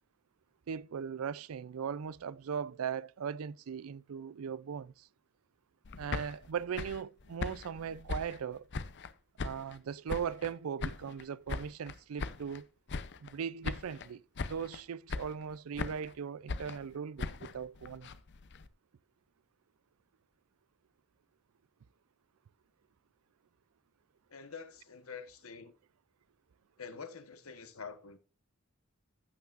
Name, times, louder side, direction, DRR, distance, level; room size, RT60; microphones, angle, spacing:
voice 1, 0.7-5.1 6.0-8.7 9.4-12.7 13.2-18.1, right 7 dB, 85° right, 0.4 m, -39 dB
sound 1, 5.8-9.1 9.4-10.5 10.8-12.6 12.9-13.4 13.6-14.1 14.4-14.8 15.1-16.1 16.5-18.7, left 4 dB, 55° left, 0.6 m, -40 dB
voice 2, 24.3-25.7 26.8-28.2, left 5 dB, 85° left, 1.2 m, -46 dB
15.0 x 5.8 x 2.5 m
head